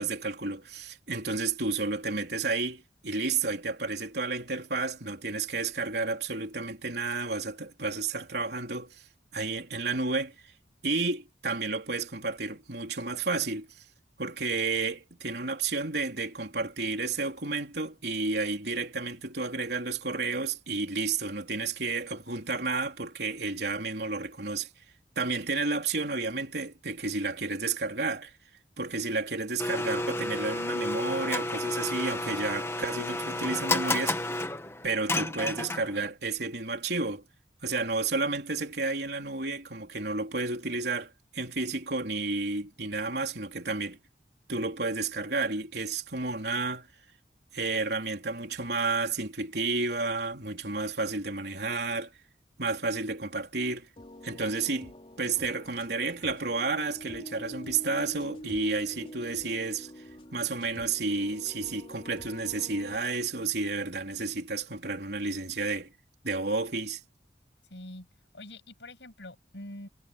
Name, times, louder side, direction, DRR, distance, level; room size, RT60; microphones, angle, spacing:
voice 1, 0.0-9.0 9.3-10.3 10.8-13.7 14.2-24.7 25.2-28.3 28.8-34.2 34.8-37.2 37.6-44.0 44.5-46.9 47.5-52.1 52.6-53.9 54.2-54.9 55.2-59.9 60.3-65.9 66.2-67.0, right 3 dB, 70° right, 3.6 m, -31 dB
Domestic sounds home sounds, 29.6-36.1, left 2 dB, 15° left, 1.3 m, -31 dB
sound 1, 54.0-63.0, equal, 30° left, 3.2 m, -46 dB
voice 2, 67.7-68.1 68.3-69.9, left 1 dB, 85° left, 7.5 m, -44 dB
head